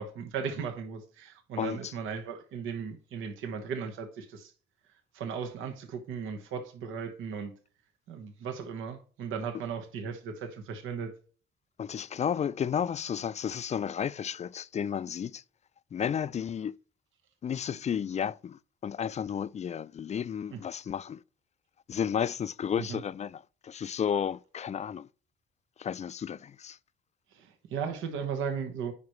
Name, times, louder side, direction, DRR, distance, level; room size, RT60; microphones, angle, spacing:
voice 1, 0.0-4.5 5.1-7.5 8.1-11.1 20.5-20.6 22.8-23.0 27.3-28.9, right 6 dB, 90° right, 1.2 m, -36 dB
voice 2, 1.6-1.9 11.8-15.4 15.9-16.7 17.4-21.2 21.9-25.1 25.8-26.8, left 8 dB, 35° left, 0.3 m, -32 dB
9.6 x 5.1 x 3.1 m
cardioid pair, 90°, 20 cm